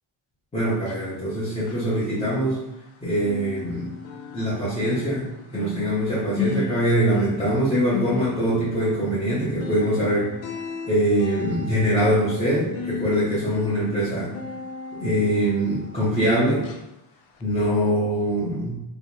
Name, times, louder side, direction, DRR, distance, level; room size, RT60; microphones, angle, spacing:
voice 1, 0.5-2.6 3.0-3.9 4.3-5.3 5.5-10.4 10.9-14.3 14.9-16.6 17.4-18.8, equal, 15° left, -12 dB, 0.9 m, -23 dB
sound 1, 0.7-2.9 3.1-16.3 16.6-16.9 17.3-17.4, left 5 dB, 70° left, 0.6 m, -36 dB
3.1 x 3.1 x 2.9 m, 0.88 s
cardioid pair, 145°, 50 cm